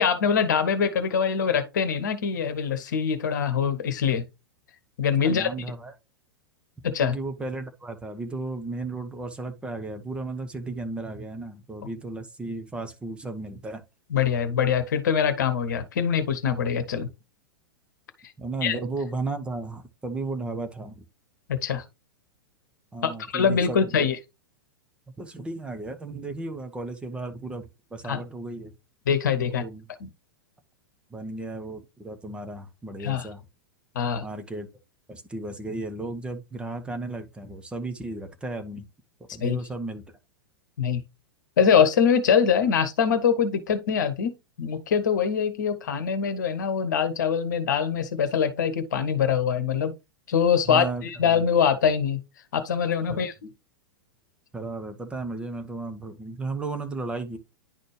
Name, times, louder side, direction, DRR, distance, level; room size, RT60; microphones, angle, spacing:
voice 1, 0.0-4.2 5.0-5.5 6.8-7.2 14.1-17.1 18.6-18.8 21.5-21.8 23.0-24.2 28.1-28.2 29.1-29.6 30.0-30.1 33.0-33.3 33.9-34.2 39.4-39.6 40.8-41.0 41.6-49.9 50.3-52.2 52.5-53.5, left 7 dB, 60° left, 1.1 m, -23 dB
voice 2, 5.2-5.9 7.0-13.8 18.4-21.0 22.9-24.1 25.2-28.7 29.5-29.9 31.1-33.4 34.2-34.7 35.1-38.9 39.3-40.2 50.7-51.5 53.1-53.2 54.5-57.4, right 3 dB, 10° right, 0.9 m, -34 dB
10.5 x 4.3 x 3.2 m
figure-of-eight pair, 100°, 11 cm